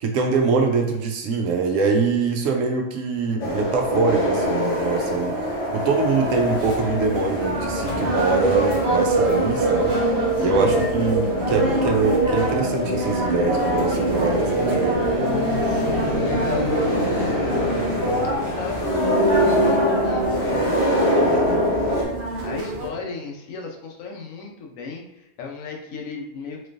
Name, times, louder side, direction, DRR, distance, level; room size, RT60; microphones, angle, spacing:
voice 1, 0.0-10.0 10.4-15.2 21.3-21.6, right 4 dB, 75° right, 3 dB, 1.0 m, -23 dB
sound 1, 3.2-15.5, left 2 dB, 40° right, 1.3 m, -39 dB
sound 2, 3.4-22.0, left 1 dB, 35° left, 0.6 m, -24 dB
sound 3, 6.2-22.9, right 2 dB, 60° right, 1.2 m, -26 dB
voice 2, 10.3-10.8 15.6-18.0 18.3-20.7 21.1-26.7, left 5 dB, 80° left, 1 dB, 1.1 m, -35 dB
4.2 x 3.1 x 2.5 m, 0.89 s
omnidirectional pair, 1.4 m